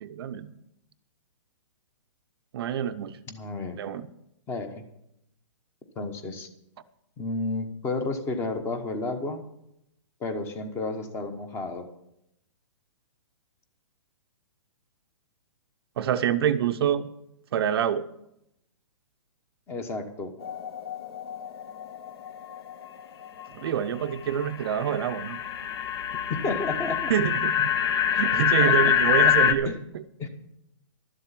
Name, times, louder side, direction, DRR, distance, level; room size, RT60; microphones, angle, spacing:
voice 1, 0.0-0.5 2.5-3.2 3.7-4.1 16.0-17.1 17.5-18.0 23.5-25.4 27.1-27.7 28.1-30.0, right 9 dB, 50° right, 10 dB, 0.7 m, -26 dB
voice 2, 3.3-3.8 4.5-4.8 6.0-6.5 7.2-9.4 10.2-11.9 19.7-20.3 26.3-27.1 28.1-28.2 28.6-28.9 29.2-29.4 29.6-29.8 30.2-30.3, left 3 dB, 15° left, 8 dB, 1.1 m, -31 dB
sound 1, 20.4-23.7 24.1-29.5, left 9 dB, 55° left, 1.0 m, -26 dB
12.5 x 7.4 x 7.5 m, 0.81 s
hypercardioid pair, 150°, 16 cm